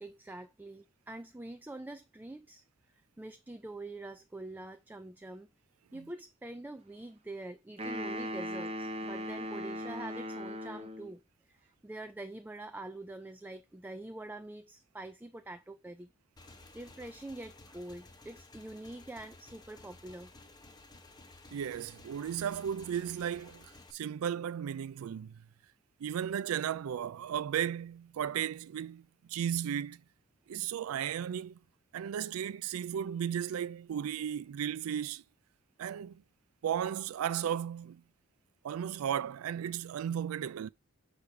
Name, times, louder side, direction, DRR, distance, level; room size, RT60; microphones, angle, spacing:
voice 1, 0.0-5.5 5.9-11.2 11.5-16.1 16.5-20.3, right 2 dB, 10° right, 0.3 m, -45 dB
sound 1, 7.8-11.1, equal, 30° right, 1.0 m, -38 dB
Motorcycle / Engine, 16.4-23.9, left 2 dB, 20° left, 0.8 m, -55 dB
voice 2, 21.5-25.4 26.0-30.0 30.5-31.6 31.9-35.2 35.8-36.2 36.6-38.0 38.6-40.7, right 9 dB, 90° right, 0.3 m, -35 dB
6.5 x 3.5 x 5.8 m
head